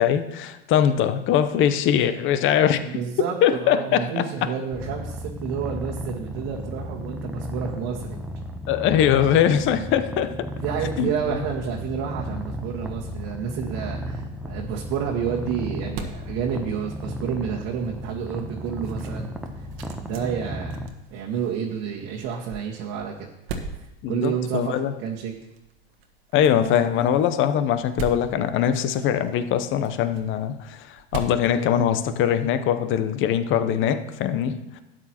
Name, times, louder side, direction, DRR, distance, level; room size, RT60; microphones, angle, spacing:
voice 1, 0.0-2.8 3.4-4.2 8.7-10.5 11.0-11.1 24.0-24.9 26.3-34.8, left 9 dB, 40° left, 11 dB, 0.8 m, -22 dB
voice 2, 2.6-8.2 10.5-19.3 20.0-20.8 21.1-23.3 24.1-25.3, right 7 dB, 50° right, -2 dB, 1.5 m, -30 dB
Purr, 4.7-20.9, equal, 5° right, 0.8 m, -34 dB
sound 1, 15.0-32.4, right 4 dB, 65° right, 1.4 m, -42 dB
12.5 x 8.8 x 3.0 m, 0.94 s
hypercardioid pair, 95°, 32 cm